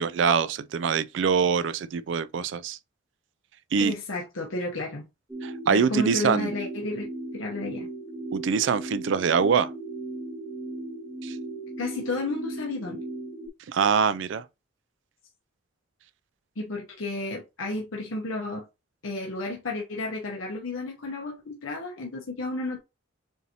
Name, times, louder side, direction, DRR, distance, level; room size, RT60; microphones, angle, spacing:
voice 1, 0.0-2.8 3.7-3.9 5.4-6.5 8.3-9.7 11.2-11.3 13.7-14.4, right 6 dB, 65° right, 0.3 m, -24 dB
voice 2, 3.8-5.0 5.6-7.9 11.8-13.0 16.6-18.7 19.0-22.8, left 2 dB, 85° left, 1.0 m, -32 dB
sound 1, 5.3-13.5, right 2 dB, 10° right, 0.6 m, -37 dB
7.0 x 2.7 x 2.8 m
head